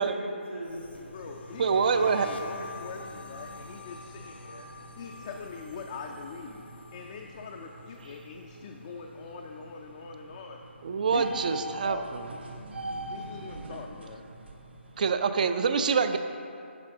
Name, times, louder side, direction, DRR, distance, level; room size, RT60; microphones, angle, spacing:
voice 1, 0.0-1.2 3.7-3.9 4.4-5.2 9.9-10.2 12.5-13.7 14.4-15.0, right 1 dB, 90° right, -6 dB, 1.8 m, -45 dB
sound 1, 0.6-9.8 10.1-10.5 10.9-12.4, left 3 dB, 55° left, 0.7 m, -47 dB
sound 2, 0.7-15.1, right 2 dB, 60° right, 0.9 m, -45 dB
voice 2, 0.9-4.7 5.0-6.6 6.9-10.6 11.1-12.1 13.1-14.2, left 5 dB, 30° left, 1 dB, 0.4 m, -42 dB
voice 3, 1.6-2.3 10.8-12.2 15.0-16.2, right 5 dB, 40° right, 10 dB, 0.4 m, -25 dB
9.8 x 5.8 x 3.6 m, 2.6 s
figure-of-eight pair, 145°, 7 cm